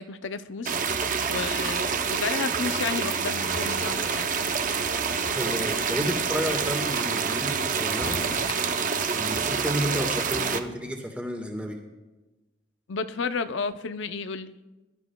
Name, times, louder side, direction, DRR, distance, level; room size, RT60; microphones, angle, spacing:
voice 1, 0.0-4.3 10.4-10.6 12.9-14.5, left 5 dB, 75° left, 11 dB, 0.5 m, -32 dB
sound 1, 0.6-10.6, right 6 dB, 40° right, 0.6 m, -27 dB
sound 2, 3.5-8.5, left 3 dB, 30° left, 0.4 m, -41 dB
voice 2, 5.3-8.2 9.1-11.8, equal, 5° right, 2 dB, 1.5 m, -31 dB
21.5 x 12.0 x 2.3 m, 1.1 s
head